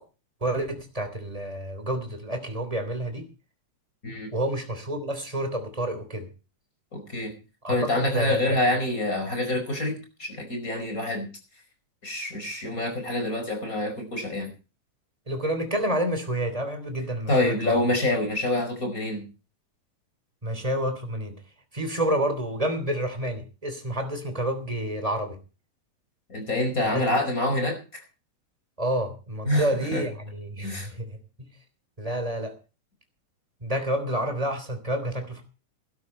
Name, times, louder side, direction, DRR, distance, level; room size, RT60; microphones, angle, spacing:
voice 1, 0.4-3.3 4.3-6.3 7.6-8.6 15.3-17.8 20.4-21.3 21.7-25.4 26.9-27.0 28.8-31.5 32.0-32.5 33.6-35.4, right 1 dB, 10° right, 6 dB, 3.2 m, -29 dB
voice 2, 6.9-7.3 7.7-11.3 12.0-14.5 17.3-19.2 26.3-27.8 29.4-30.0 30.6-30.9, left 1 dB, 25° left, 4 dB, 5.4 m, -26 dB
16.5 x 12.0 x 4.4 m, 0.34 s
omnidirectional pair, 3.4 m